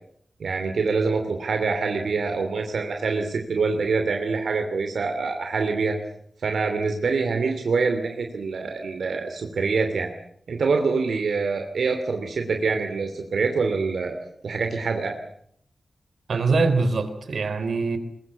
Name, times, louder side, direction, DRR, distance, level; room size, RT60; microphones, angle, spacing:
voice 1, 0.4-6.0 6.4-10.1 10.5-14.2 14.4-15.1, right 4 dB, 90° right, 5 dB, 2.8 m, -25 dB
voice 2, 16.3-18.0, right 3 dB, 70° right, 10 dB, 3.5 m, -23 dB
22.5 x 21.5 x 8.6 m, 0.67 s
wide cardioid pair, 125°, 0 cm